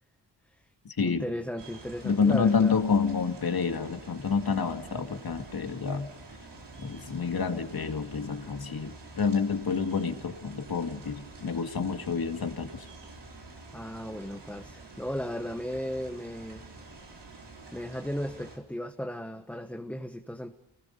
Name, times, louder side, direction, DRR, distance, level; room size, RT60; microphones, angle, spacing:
voice 1, 1.0-2.8 13.7-16.6 17.7-20.5, equal, 5° left, 5 dB, 1.3 m, -36 dB
sound 1, 1.6-18.6, right 3 dB, 80° right, 4.4 m, -48 dB
voice 2, 2.0-6.1 6.8-12.9, left 5 dB, 60° left, 6 dB, 2.2 m, -28 dB
29.0 x 20.0 x 5.4 m, 0.89 s
wide cardioid pair, 75°, 41 cm